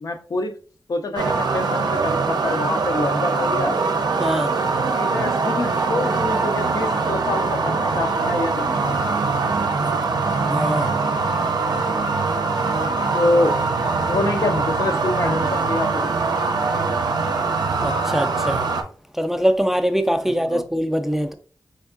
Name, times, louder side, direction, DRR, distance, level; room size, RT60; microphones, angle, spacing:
voice 1, 0.0-0.6 0.9-3.8 5.0-9.0 13.1-13.6 14.1-16.1 20.2-20.6, left 2 dB, 60° left, 0.5 m, -25 dB
sound 1, 1.2-18.8, right 4 dB, 90° right, 0.5 m, -22 dB
voice 2, 4.2-4.5 9.6-9.7 10.5-10.9 17.8-18.7 19.1-21.3, equal, 5° right, 0.3 m, -23 dB
4.5 x 3.5 x 2.4 m
wide cardioid pair, 105°, 7 cm